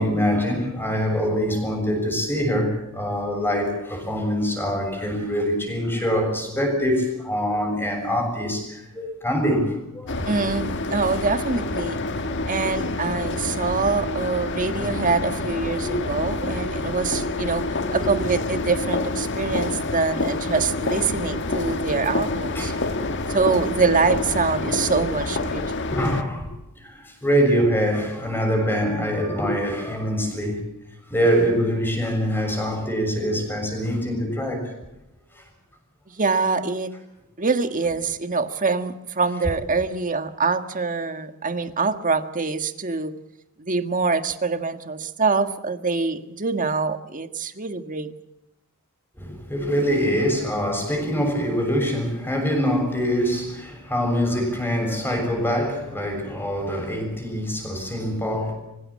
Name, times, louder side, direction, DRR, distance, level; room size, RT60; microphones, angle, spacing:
voice 1, 0.0-10.3 12.2-12.3 15.8-15.9 16.7-16.8 17.3-18.2 22.6-23.4 25.5-30.7 31.1-34.7 35.3-35.4 49.2-58.5, equal, 10° left, 6.9 m, -24 dB
sound 1, 10.1-26.2, left 2 dB, 55° left, 1.5 m, -27 dB
voice 2, 10.2-12.0 12.5-17.6 17.9-22.7 23.3-25.6 36.1-36.9 37.4-43.1 43.6-48.1, right 4 dB, 40° right, 1.6 m, -24 dB
25.5 x 16.0 x 8.7 m
head